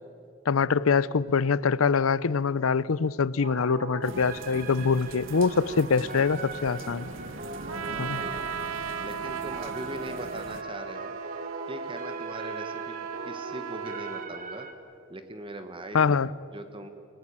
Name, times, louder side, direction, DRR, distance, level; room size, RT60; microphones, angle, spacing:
voice 1, 0.5-7.1 8.0-8.2 15.9-16.3, left 5 dB, 75° left, 20 dB, 0.6 m, -24 dB
sound 1, 3.4-14.7, right 3 dB, 40° right, 1.7 m, -40 dB
sound 2, 4.0-10.6, right 2 dB, 60° right, 1.2 m, -43 dB
voice 2, 5.9-6.3 7.8-8.4 9.0-11.1 11.7-14.7 15.1-16.1 16.5-16.9, right 1 dB, 25° right, 8 dB, 1.4 m, -40 dB
Trumpet, 7.7-14.3, right 7 dB, 80° right, 0.8 m, -37 dB
29.5 x 19.0 x 8.7 m, 2.6 s
head